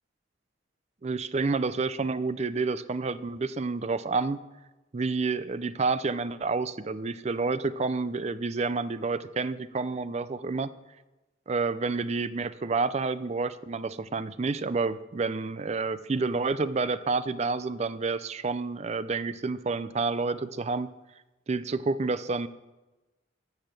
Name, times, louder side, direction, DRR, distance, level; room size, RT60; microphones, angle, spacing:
voice 1, 1.0-4.4 4.9-10.7 11.5-20.9 21.5-22.5, right 4 dB, 35° right, 15 dB, 0.4 m, -29 dB
13.5 x 6.9 x 6.6 m, 1.1 s
head